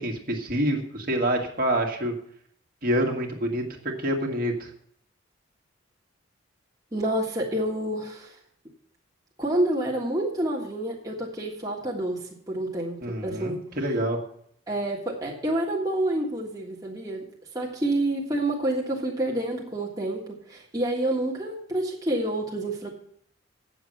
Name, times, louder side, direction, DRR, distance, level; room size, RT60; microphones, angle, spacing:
voice 1, 0.0-2.1 2.8-4.7 13.0-14.2, right 1 dB, 45° right, 1 dB, 1.8 m, -27 dB
voice 2, 6.9-8.3 9.4-13.6 14.7-17.2 17.5-22.9, right 1 dB, 20° right, -3 dB, 1.6 m, -28 dB
9.2 x 7.1 x 7.7 m, 0.66 s
head